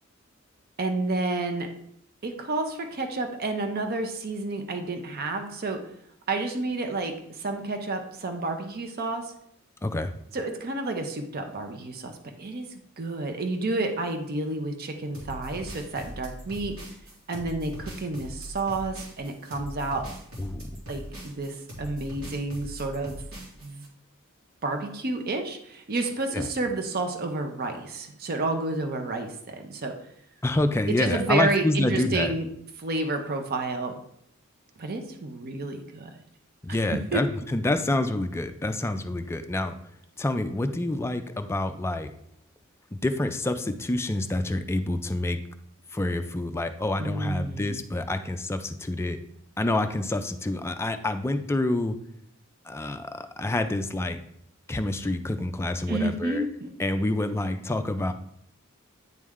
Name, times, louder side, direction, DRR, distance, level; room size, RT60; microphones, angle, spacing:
voice 1, 0.8-1.7 2.2-5.8 6.3-9.3 10.3-12.7 13.0-16.8 17.3-20.1 20.9-23.2 23.6-23.8 24.6-29.9 30.9-32.5 32.8-34.0 34.8-36.1 36.9-37.2 47.0-47.8 55.9-56.7, right 2 dB, 45° right, 5 dB, 0.6 m, -30 dB
voice 2, 9.8-10.1 20.4-20.7 26.3-26.5 30.4-32.3 36.6-39.7 40.2-42.1 42.9-45.4 45.9-49.2 49.6-52.0 52.7-54.2 54.7-56.4 56.8-58.1, left 2 dB, 10° left, 8 dB, 0.3 m, -27 dB
sound 1, 15.1-23.9, equal, 75° right, 1.8 m, -41 dB
9.2 x 3.2 x 3.6 m, 0.70 s
head